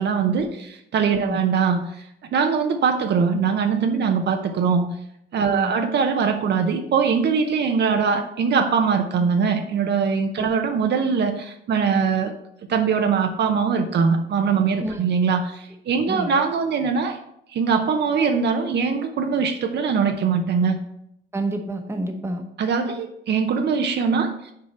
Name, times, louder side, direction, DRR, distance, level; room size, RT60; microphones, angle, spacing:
voice 1, 0.0-1.9 2.3-4.9 5.3-12.3 12.7-17.2 17.5-20.8 22.6-24.5, right 6 dB, 60° right, 5 dB, 0.7 m, -22 dB
voice 2, 21.3-22.4, right 2 dB, 15° right, 4 dB, 1.0 m, -28 dB
6.0 x 4.5 x 4.3 m, 0.76 s
cardioid pair, 90°, 20 cm